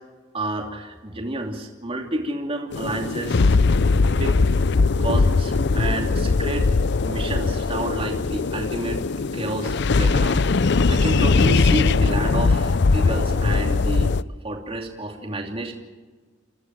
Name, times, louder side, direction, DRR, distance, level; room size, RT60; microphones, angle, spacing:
voice 1, 0.3-3.5 4.0-4.3 5.0-6.7 7.0-9.0 9.3-14.1 14.4-15.7, right 1 dB, 30° right, 2 dB, 2.9 m, -30 dB
sound 1, 2.7-14.2, left 4 dB, 60° left, 0.6 m, -20 dB
28.0 x 16.0 x 7.6 m, 1.4 s
head